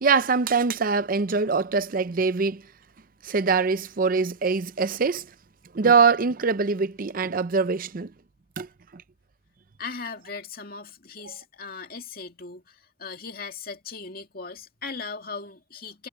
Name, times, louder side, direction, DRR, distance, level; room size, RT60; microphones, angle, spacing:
voice 1, 0.0-2.6 3.2-5.3 5.7-8.1 8.6-8.7 8.9-9.0, right 5 dB, 45° right, 0.6 m, -23 dB
voice 2, 9.8-16.1, left 4 dB, 50° left, 2.4 m, -38 dB
head